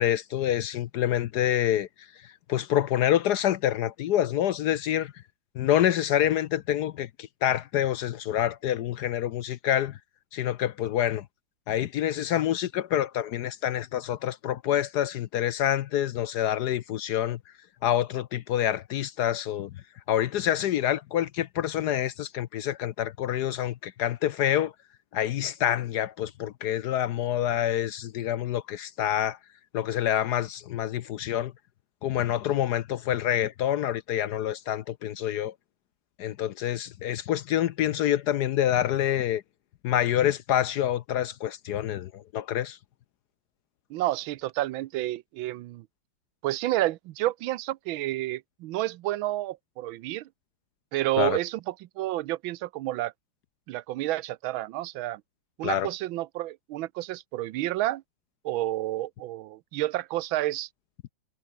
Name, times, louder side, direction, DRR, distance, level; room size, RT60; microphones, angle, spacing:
voice 1, 0.0-1.9 2.2-5.1 5.5-10.0 10.3-11.3 11.7-17.4 17.8-19.7 20.1-24.7 25.1-29.4 29.7-31.5 32.0-35.5 36.2-39.4 39.8-42.8 51.2-51.4 55.6-55.9, left 11 dB, 65° left, 1.1 m, -27 dB
voice 2, 43.9-45.9 46.4-50.3 50.9-53.1 53.7-55.2 55.6-58.0 58.4-60.7, right 15 dB, 90° right, 1.5 m, -30 dB
omnidirectional pair, 2.2 m